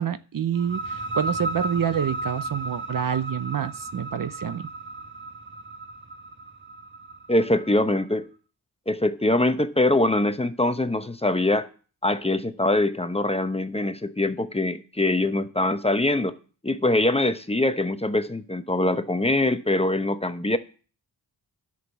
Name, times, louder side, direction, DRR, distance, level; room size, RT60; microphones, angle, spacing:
voice 1, 0.0-4.7, right 8 dB, 50° right, 0.7 m, -27 dB
sound 1, 0.5-8.0, right 2 dB, 25° right, 1.6 m, -35 dB
voice 2, 7.3-8.3 8.9-11.7 12.0-16.4 16.6-20.6, left 2 dB, 15° left, 0.8 m, -23 dB
11.0 x 6.4 x 7.2 m
cardioid pair, 85°, 42 cm